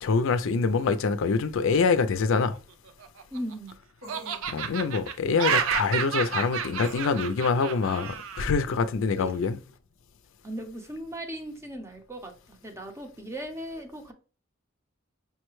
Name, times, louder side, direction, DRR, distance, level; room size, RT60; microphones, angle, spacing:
voice 1, 0.0-2.6 4.5-9.6, left 4 dB, 65° left, 0.4 m, -25 dB
Laughter, 2.9-3.7 4.1-8.5, right 7 dB, 70° right, 0.4 m, -30 dB
voice 2, 3.3-3.7 9.2-9.5 10.4-14.1, right 1 dB, 15° right, 0.7 m, -38 dB
sound 1, 4.0-4.4 6.8-7.3, equal, 85° right, 1.3 m, -44 dB
5.6 x 2.1 x 3.1 m
head